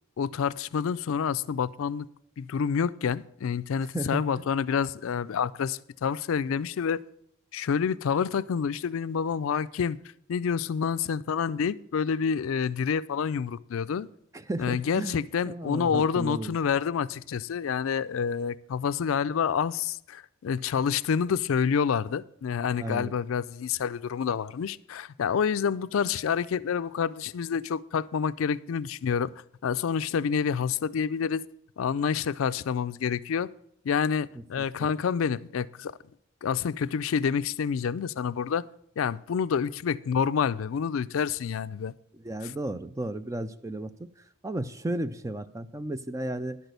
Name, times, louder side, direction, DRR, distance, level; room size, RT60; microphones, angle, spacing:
voice 1, 0.2-2.1 2.4-7.0 7.5-10.0 10.3-14.1 14.6-29.3 29.6-31.5 31.8-33.5 33.8-35.9 36.4-38.7 39.0-41.9 42.4-42.5, left 6 dB, 75° left, 0.4 m, -28 dB
voice 2, 14.3-15.2 15.5-16.6 22.8-23.1 34.6-34.9 42.1-44.1 44.4-46.6, right 1 dB, 15° right, 0.4 m, -34 dB
11.0 x 6.2 x 6.6 m
head